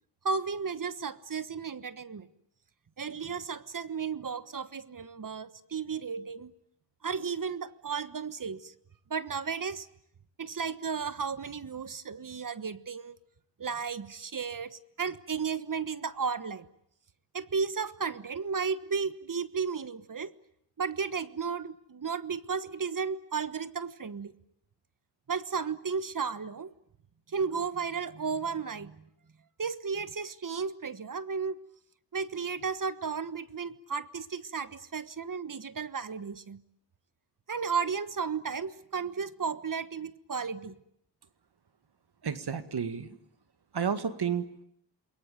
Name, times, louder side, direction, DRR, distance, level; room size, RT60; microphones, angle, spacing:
voice 1, 0.2-2.3 3.0-6.5 7.0-8.7 9.1-9.9 10.4-13.2 13.6-16.7 17.3-20.3 20.8-24.3 25.3-26.7 27.3-29.0 29.6-31.6 32.1-36.6 37.5-40.8, right 5 dB, 45° right, 14 dB, 1.4 m, -34 dB
voice 2, 42.2-43.1 43.7-44.6, right 7 dB, 65° right, 11 dB, 2.0 m, -31 dB
28.5 x 21.5 x 9.3 m, 0.75 s
wide cardioid pair, 95°, 43 cm